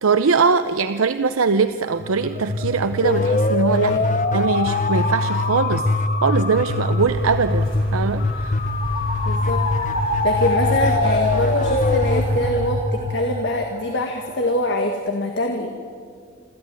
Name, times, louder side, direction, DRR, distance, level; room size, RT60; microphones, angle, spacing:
voice 1, 0.0-3.9 4.3-5.8 6.2-7.6 7.9-8.5, right 5 dB, 85° right, 10 dB, 0.7 m, -21 dB
sound 1, 1.6-14.8, right 4 dB, 30° right, 1.3 m, -34 dB
sound 2, 2.0-13.8, left 3 dB, 40° left, 0.8 m, -22 dB
voice 2, 3.8-4.2 9.3-9.6 10.2-15.7, left 1 dB, 60° left, 3 dB, 1.8 m, -24 dB
sound 3, 7.0-12.5, left 1 dB, 85° left, 5.4 m, -34 dB
26.5 x 14.0 x 9.4 m, 2.1 s
head